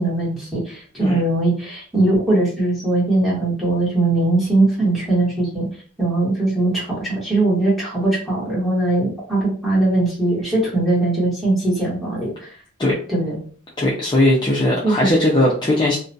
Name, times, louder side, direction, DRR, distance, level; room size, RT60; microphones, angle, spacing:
voice 1, 0.0-5.7 6.0-12.5 13.1-13.4 14.8-15.1, right 2 dB, ahead, -8 dB, 1.1 m, -20 dB
voice 2, 13.8-16.0, left 1 dB, 20° left, -5 dB, 0.4 m, -18 dB
2.4 x 2.1 x 2.6 m, 0.43 s
head